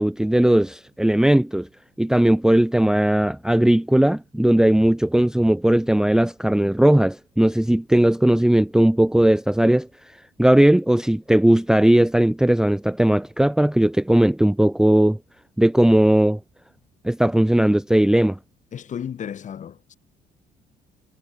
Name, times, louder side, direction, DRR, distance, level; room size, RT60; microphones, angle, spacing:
voice 1, 0.0-1.7 2.0-9.9 10.4-15.2 15.6-16.4 17.0-18.4, right 1 dB, 5° right, 0.8 m, -18 dB
voice 2, 18.7-19.9, left 8 dB, 45° left, 3.5 m, -33 dB
cardioid pair, 110°, 17 cm